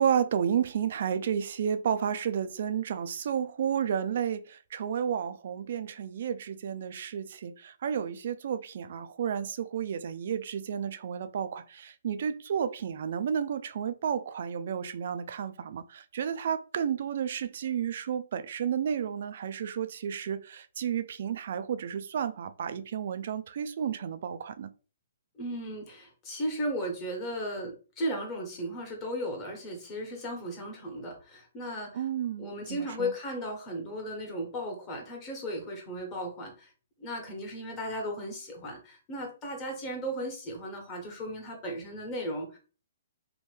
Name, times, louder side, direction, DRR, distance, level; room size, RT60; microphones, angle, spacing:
voice 1, 0.0-24.7 31.9-33.1, right 8 dB, 60° right, 0.3 m, -32 dB
voice 2, 25.4-32.0 32.4-36.7 37.0-42.6, equal, 25° left, 1.1 m, -36 dB
2.8 x 2.2 x 3.3 m
hypercardioid pair, 140°, 0 cm